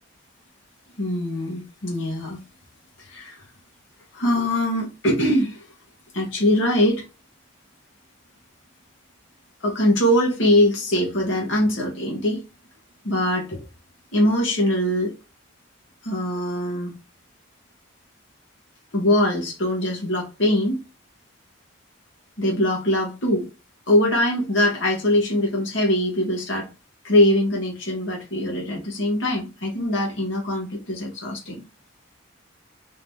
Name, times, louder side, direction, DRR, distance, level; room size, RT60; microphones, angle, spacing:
voice 1, 1.0-2.4 3.0-3.4 4.1-5.7 6.1-7.0 9.6-12.4 13.0-13.7 14.1-15.1 16.0-17.0 18.9-20.8 22.4-23.5 23.9-26.7 27.0-31.6, left 1 dB, 60° left, 1.3 m, -22 dB
3.6 x 2.9 x 3.5 m
head